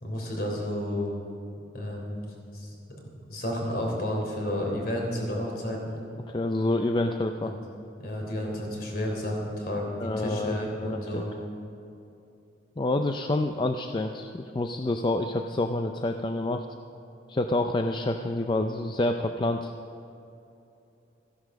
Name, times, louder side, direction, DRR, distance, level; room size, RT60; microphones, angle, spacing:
voice 1, 0.0-1.1 1.7-6.0 7.4-7.6 8.0-11.3, left 1 dB, 50° left, 0 dB, 3.4 m, -32 dB
voice 2, 6.3-7.5 10.0-11.2 12.8-16.7 17.3-19.7, left 2 dB, 25° left, 5 dB, 0.4 m, -28 dB
14.0 x 11.0 x 6.5 m, 2.8 s
head